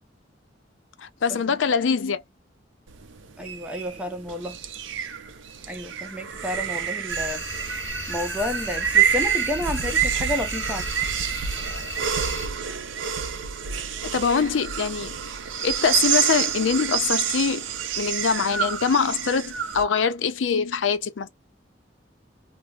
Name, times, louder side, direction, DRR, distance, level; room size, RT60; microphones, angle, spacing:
voice 1, 1.0-2.2 14.0-15.2 15.6-17.7 18.0-21.3, left 6 dB, 85° left, 0.5 m, -23 dB
sound 1, 2.9-19.8, right 8 dB, 85° right, 0.5 m, -27 dB
voice 2, 3.4-4.6 5.7-7.4 8.1-10.8, left 1 dB, 5° right, 0.7 m, -31 dB
sound 2, 7.1-12.5, equal, 15° left, 1.0 m, -35 dB
3.2 x 2.0 x 2.3 m
head